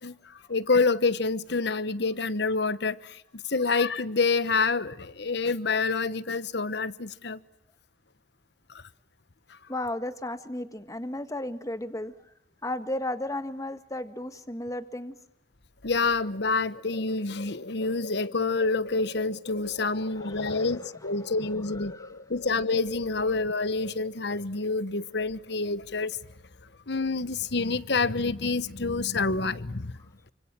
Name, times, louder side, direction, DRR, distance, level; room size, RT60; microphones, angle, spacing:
voice 1, 0.0-7.4 8.7-8.8 9.5-9.6 15.8-26.2 26.9-29.9, left 4 dB, 65° left, 1.2 m, -27 dB
voice 2, 9.7-12.1 12.6-15.1 20.2-20.7 21.9-22.1, left 1 dB, 20° left, 1.7 m, -34 dB
29.5 x 25.5 x 7.6 m
head